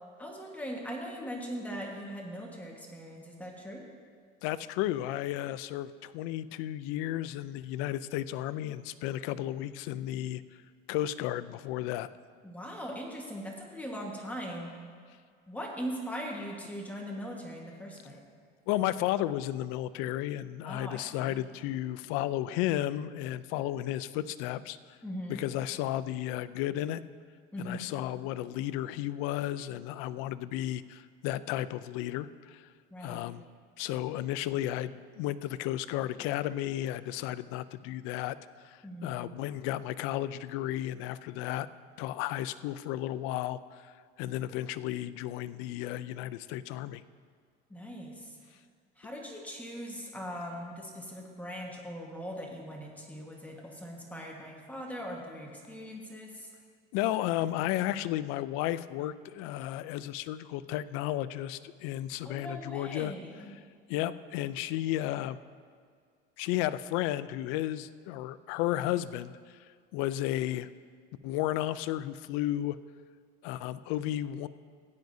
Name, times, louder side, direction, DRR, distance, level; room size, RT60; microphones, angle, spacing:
voice 1, 0.2-3.8 12.4-14.7 15.5-18.2 20.6-21.4 25.0-25.4 27.5-27.9 32.9-33.2 38.8-39.2 47.7-48.4 49.0-56.5 62.2-63.5, equal, 5° left, -2 dB, 1.4 m, -40 dB
voice 2, 4.4-10.4 10.9-12.1 18.7-25.0 25.3-27.0 27.6-32.7 33.0-33.4 33.8-38.4 38.6-41.7 42.0-47.0 56.9-63.1 63.9-65.4 66.4-69.7 69.9-70.7 71.2-72.8 73.4-74.5, left 13 dB, 85° left, 15 dB, 0.5 m, -33 dB
16.5 x 10.5 x 2.7 m, 2.1 s
cardioid pair, 135°, 21 cm